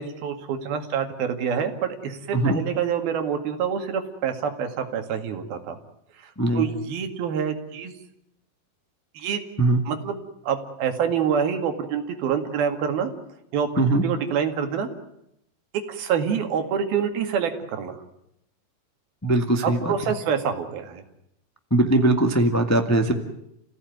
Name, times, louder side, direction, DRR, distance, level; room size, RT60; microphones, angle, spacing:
voice 1, 0.0-5.8 6.2-7.9 9.2-9.4 9.9-10.2 10.4-13.1 13.5-14.9 15.9-18.0 19.6-21.0, right 7 dB, 90° right, 6 dB, 4.0 m, -26 dB
voice 2, 19.2-19.9 21.7-23.1, right 2 dB, 10° left, 5 dB, 0.8 m, -20 dB
29.5 x 16.5 x 9.4 m, 0.79 s
omnidirectional pair, 4.2 m